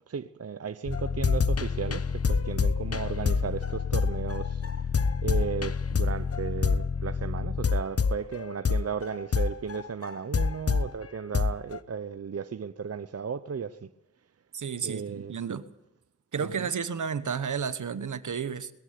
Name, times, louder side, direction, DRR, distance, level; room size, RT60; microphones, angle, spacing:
voice 1, 0.1-4.6 5.2-13.9 14.8-15.6 16.4-16.7, right 6 dB, 50° right, 0.8 m, -35 dB
sound 1, 0.8-10.9 11.3-11.8, left 5 dB, 50° left, 1.0 m, -27 dB
voice 2, 14.5-15.6 16.3-18.7, right 6 dB, 70° right, 1.2 m, -32 dB
21.0 x 13.5 x 9.5 m
cardioid pair, 45°, 31 cm